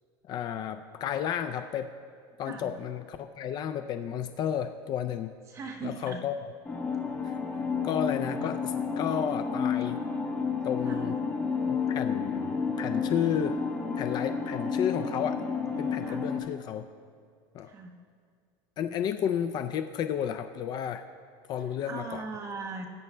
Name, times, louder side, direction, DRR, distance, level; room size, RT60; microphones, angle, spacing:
voice 1, 0.2-1.9 2.4-5.3 5.8-6.5 7.2-7.4 7.8-10.0 10.6-11.2 11.7-13.6 14.0-15.4 15.8-16.9 17.5-17.7 18.8-21.0 21.5-22.2, left 9 dB, 35° left, 9 dB, 0.4 m, -32 dB
voice 2, 5.5-6.2 10.8-11.1 16.0-16.2 17.7-17.9 21.8-22.8, right 4 dB, 25° right, 1 dB, 1.2 m, -39 dB
sound 1, 6.7-16.4, left 5 dB, 10° left, 1.0 m, -31 dB
20.0 x 9.4 x 2.2 m, 2.1 s
supercardioid pair, 145°, 12 cm